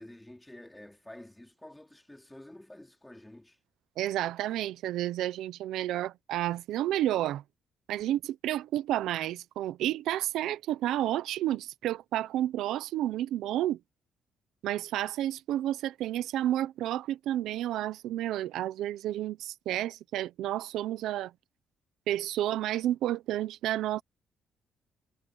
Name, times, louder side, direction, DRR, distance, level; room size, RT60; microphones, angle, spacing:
voice 1, 0.0-3.6, left 1 dB, 10° left, 4.0 m, -49 dB
voice 2, 4.0-7.4 7.9-13.8 14.6-21.3 22.1-24.0, right 13 dB, 85° right, 1.0 m, -31 dB
cardioid pair, 90°, 0 cm